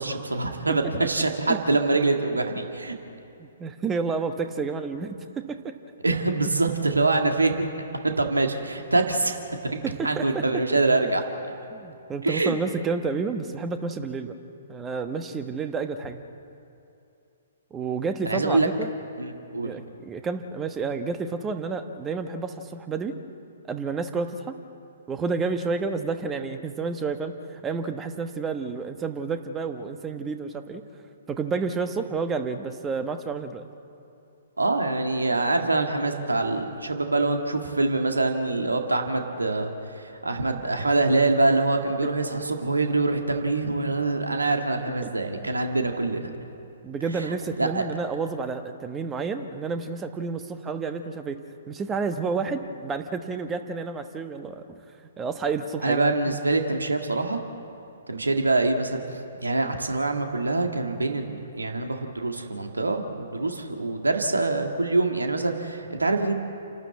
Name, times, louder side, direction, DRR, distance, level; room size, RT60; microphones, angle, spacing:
voice 1, 0.0-3.0 6.0-7.7 8.0-9.4 9.7-11.2 12.2-12.6 18.3-18.7 19.2-19.7 34.6-46.3 47.2-47.8 55.8-57.4 58.1-59.0 59.4-66.3, right 2 dB, 75° right, 4 dB, 1.9 m, -25 dB
voice 2, 3.4-5.8 9.8-10.6 11.7-14.4 14.7-16.2 17.7-18.9 19.6-23.2 23.7-24.5 25.1-30.8 31.3-33.7 42.0-42.1 45.0-45.5 46.8-51.4 51.7-54.8 55.2-56.1, right 4 dB, 15° right, 8 dB, 1.2 m, -30 dB
29.5 x 12.5 x 8.3 m, 2.7 s
figure-of-eight pair, 120°, 0 cm